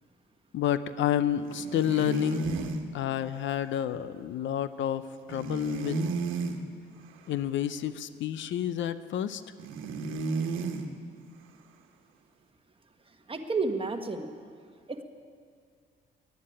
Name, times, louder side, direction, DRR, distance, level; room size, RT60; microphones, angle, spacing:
voice 1, 0.5-2.6 2.9-6.0 7.3-9.4, left 10 dB, 70° left, 14 dB, 0.6 m, -29 dB
sound 1, 1.4-2.8 5.3-6.6 9.6-10.9, right 4 dB, 90° right, 1.3 m, -32 dB
voice 2, 13.3-14.3 14.9-15.0, right 3 dB, 25° right, 5 dB, 1.4 m, -31 dB
11.5 x 10.5 x 9.8 m, 2.1 s
cardioid pair, 90°, 20 cm